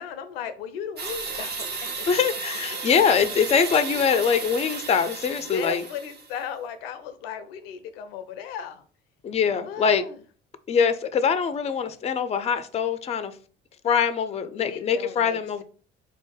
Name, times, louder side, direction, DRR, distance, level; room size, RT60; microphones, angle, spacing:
voice 1, 0.0-2.1 5.5-8.8 9.6-10.2 14.6-15.6, left 8 dB, 75° left, 11 dB, 0.5 m, -36 dB
sound 1, 1.0-6.4, right 4 dB, 35° right, 0.8 m, -34 dB
voice 2, 2.0-5.8 9.2-10.0 10.7-13.4 13.8-15.6, left 6 dB, 20° left, 12 dB, 0.4 m, -23 dB
3.9 x 2.6 x 3.6 m, 0.41 s
figure-of-eight pair, 50°, 30 cm